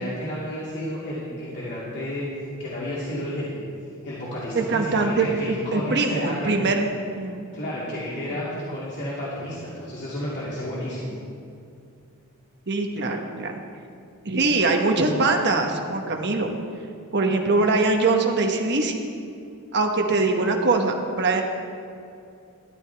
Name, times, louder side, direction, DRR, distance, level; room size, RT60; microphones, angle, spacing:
voice 1, 0.0-2.3 2.6-3.6 4.0-6.7 7.5-11.1, left 1 dB, 50° left, -9 dB, 2.5 m, -31 dB
voice 2, 4.5-6.8 7.2-7.5 12.7-13.6 14.2-16.5 17.1-19.0 19.7-21.4, right 3 dB, 50° right, 3 dB, 1.1 m, -22 dB
14.0 x 11.5 x 3.4 m, 2.5 s
head